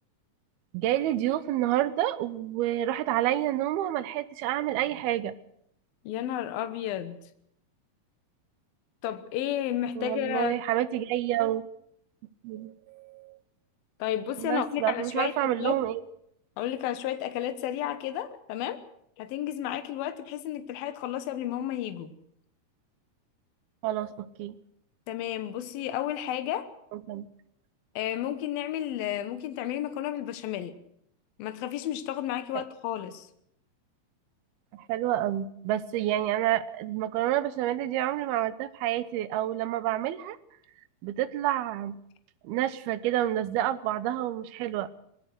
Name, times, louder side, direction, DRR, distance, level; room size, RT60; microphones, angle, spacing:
voice 1, 0.7-5.3 10.0-11.7 12.4-13.4 14.4-16.0 23.8-24.6 26.9-27.3 34.7-40.4 41.0-42.0 42.4-44.9, right 13 dB, 80° right, 2.8 m, -29 dB
voice 2, 6.0-7.2 9.0-10.5 14.0-15.8 16.6-18.8 19.2-22.1 25.1-26.7 28.0-30.7 31.4-33.3, left 11 dB, 75° left, 2.9 m, -32 dB
21.0 x 17.0 x 7.9 m
omnidirectional pair, 4.5 m